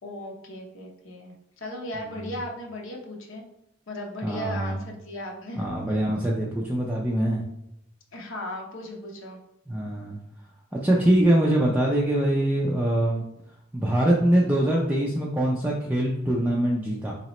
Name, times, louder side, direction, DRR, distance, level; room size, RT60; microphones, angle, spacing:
voice 1, 0.0-3.4 3.9-5.7 8.1-9.4, left 1 dB, 65° left, 0 dB, 0.8 m, -36 dB
voice 2, 4.2-4.8 5.6-7.4 9.7-10.2 10.7-13.2 13.7-17.1, right 1 dB, 10° right, -4 dB, 0.3 m, -23 dB
3.9 x 2.9 x 3.0 m, 0.82 s
head